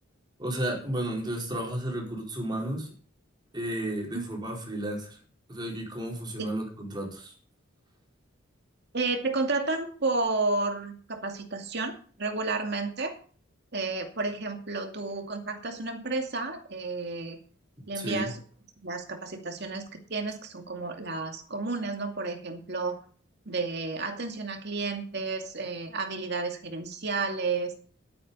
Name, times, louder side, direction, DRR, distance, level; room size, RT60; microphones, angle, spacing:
voice 1, 0.4-2.9 3.5-5.2 5.5-7.3 18.0-18.3, right 1 dB, 20° right, -1 dB, 4.4 m, -33 dB
voice 2, 8.9-13.1 13.7-17.4 17.9-18.4 18.8-23.0 23.5-27.7, right 3 dB, 55° right, 4 dB, 2.4 m, -31 dB
11.5 x 9.4 x 5.5 m, 0.43 s
head